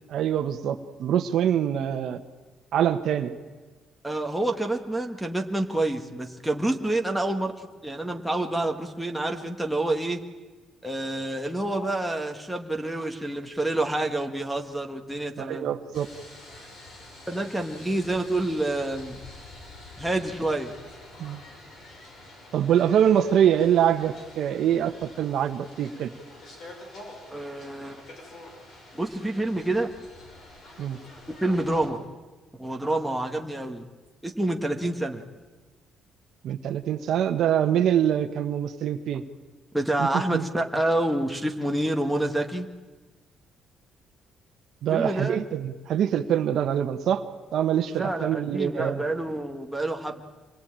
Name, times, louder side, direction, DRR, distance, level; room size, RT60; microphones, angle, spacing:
voice 1, 0.1-2.2 2.7-3.3 15.4-16.1 21.2-21.4 22.5-26.1 30.8-31.0 36.4-39.2 40.0-40.1 40.3-40.4 44.8-47.2 47.5-49.0, right 9 dB, 55° right, 9 dB, 1.3 m, -24 dB
voice 2, 4.0-10.2 10.8-15.7 17.3-19.2 20.0-20.7 27.3-28.0 28.9-29.9 31.4-32.0 32.6-33.9 34.2-35.3 39.7-42.7 44.9-45.4 47.9-50.2, right 1 dB, ahead, 2 dB, 1.5 m, -28 dB
sound 1, 15.9-31.9, left 1 dB, 45° left, 5.7 m, -47 dB
26.0 x 20.5 x 9.0 m, 1.3 s
cardioid pair, 180°, 0 cm